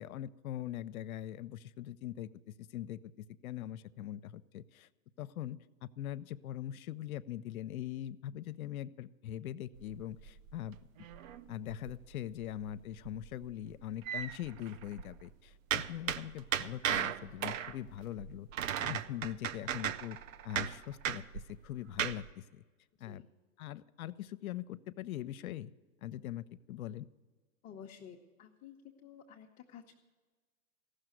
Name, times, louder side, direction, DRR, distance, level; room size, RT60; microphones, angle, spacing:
voice 1, 0.0-4.9 5.2-10.8 11.5-18.5 18.8-20.2 20.4-22.6 23.0-23.2 23.6-25.7 26.0-27.1, left 12 dB, 75° left, 15 dB, 0.6 m, -42 dB
sound 1, 9.7-12.1 12.4-12.7 13.0-15.2 15.7-22.3, right 9 dB, 65° right, 0.7 m, -37 dB
voice 2, 27.6-28.8 29.0-30.0, left 8 dB, 20° left, -1 dB, 0.7 m, -52 dB
15.0 x 6.5 x 9.1 m, 1.3 s
hypercardioid pair, 135°, 42 cm